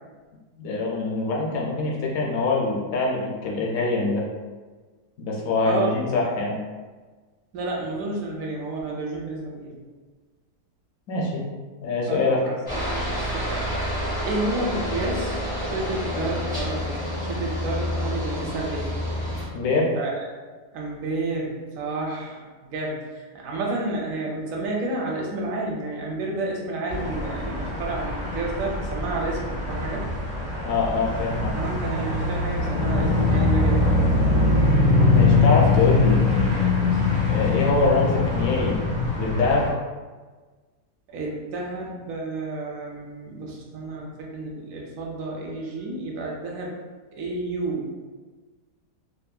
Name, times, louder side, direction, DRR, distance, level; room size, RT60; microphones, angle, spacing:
voice 1, 0.6-4.2 5.2-6.6 11.1-11.4 11.8-12.4 19.5-19.9 30.6-31.5 35.1-36.2 37.3-38.8 39.2-39.7, left 3 dB, 70° left, -3 dB, 0.9 m, -24 dB
voice 2, 5.6-6.2 7.5-9.8 12.1-12.5 12.8-13.7 14.2-18.9 19.9-20.2 20.7-30.0 31.5-34.0 36.9-37.0 41.1-46.7 47.1-47.9, right 2 dB, 65° right, -2 dB, 0.9 m, -31 dB
Aircraft, 12.7-19.5, equal, 5° right, 1.0 m, -28 dB
sound 1, 26.9-39.7, left 3 dB, 40° left, 0.8 m, -22 dB
2.7 x 2.6 x 2.2 m, 1.4 s
omnidirectional pair, 1.8 m